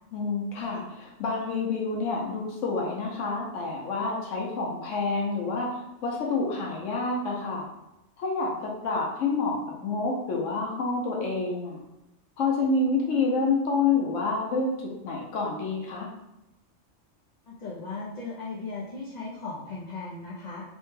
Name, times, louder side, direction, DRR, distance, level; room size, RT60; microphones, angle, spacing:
voice 1, 0.1-7.7 8.2-11.8 12.4-14.7 15.0-16.1, left 3 dB, 90° left, -2 dB, 1.0 m, -28 dB
voice 2, 17.5-20.6, left 3 dB, 50° left, -6 dB, 0.5 m, -37 dB
3.2 x 2.1 x 3.1 m, 0.93 s
omnidirectional pair, 1.3 m